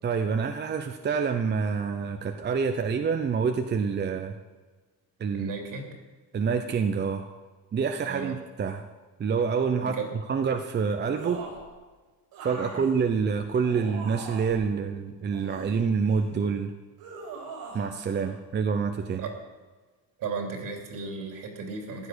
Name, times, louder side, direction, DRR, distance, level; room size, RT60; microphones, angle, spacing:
voice 1, 0.0-4.4 5.2-5.5 6.3-7.3 7.7-8.9 9.2-10.0 10.3-11.4 12.4-16.7 17.7-19.2, right 5 dB, 30° right, 6 dB, 0.8 m, -27 dB
voice 2, 5.3-5.9 8.0-8.4 9.8-10.1 12.6-12.9 19.2-19.3 20.2-22.1, right 4 dB, 65° right, 3 dB, 3.2 m, -35 dB
sound 1, 11.2-11.7 12.3-14.6 15.3-16.4 17.0-17.9 18.1-18.3, right 4 dB, 90° right, 5.7 m, -41 dB
15.0 x 11.0 x 6.4 m, 1.3 s
cardioid pair, 140°, 35 cm